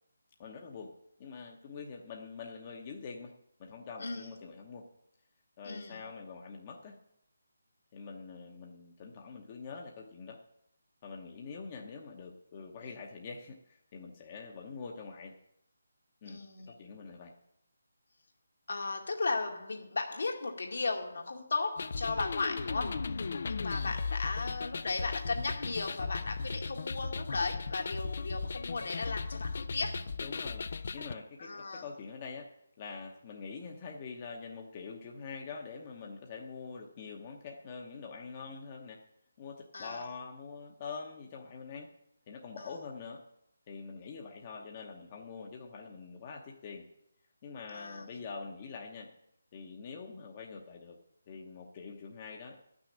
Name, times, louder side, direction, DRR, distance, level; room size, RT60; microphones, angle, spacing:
voice 1, 0.4-0.9 1.2-3.3 3.6-4.9 5.6-7.0 7.9-10.4 11.0-15.3 16.2-16.4 16.7-17.3 30.2-32.5 32.8-39.0 39.4-41.9 42.3-43.2 43.7-46.9 47.4-49.1 49.5-51.0 51.3-52.6, left 5 dB, 25° left, 1 dB, 0.9 m, -45 dB
voice 2, 4.0-4.3 5.6-6.0 16.2-16.8 18.7-30.1 31.4-31.9 39.7-40.0 42.6-42.7 47.7-48.1, left 3 dB, 65° left, 2 dB, 2.0 m, -36 dB
sound 1, 21.8-31.1, left 4 dB, 50° left, 0.5 m, -36 dB
11.0 x 6.4 x 8.6 m, 0.76 s
hypercardioid pair, 170°, 0 cm